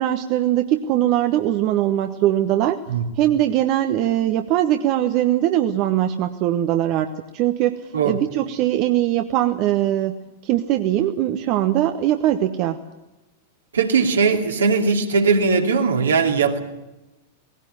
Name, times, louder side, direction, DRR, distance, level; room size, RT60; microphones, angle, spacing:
voice 1, 0.0-2.8 3.2-10.2 10.4-12.8, right 12 dB, 40° right, 7 dB, 1.1 m, -21 dB
voice 2, 13.7-16.6, right 5 dB, 70° right, 3 dB, 2.6 m, -19 dB
18.5 x 16.5 x 9.7 m, 1.0 s
figure-of-eight pair, 95°, 0 cm